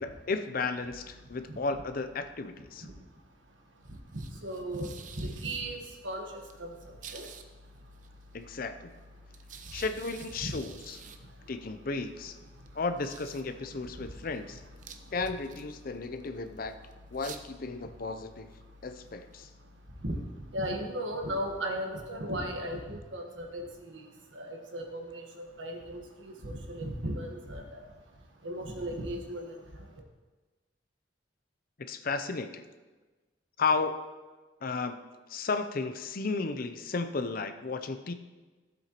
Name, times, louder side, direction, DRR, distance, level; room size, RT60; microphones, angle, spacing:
voice 1, 0.0-2.9 8.3-8.9 9.7-11.0 11.5-12.4 12.7-14.6 15.1-16.8 17.1-18.5 18.8-19.5 31.9-32.6 33.6-34.0 34.6-35.0 35.3-38.1, left 4 dB, 50° left, 9 dB, 0.6 m, -33 dB
sound 1, 0.9-20.8, right 3 dB, 45° right, 0.6 m, -52 dB
voice 2, 4.1-4.9 5.2-7.3 10.4-10.5 20.0-20.2 20.5-24.0 24.3-27.8 28.4-29.5, right 1 dB, 85° right, 2 dB, 1.4 m, -36 dB
14.5 x 7.9 x 3.0 m, 1.3 s
head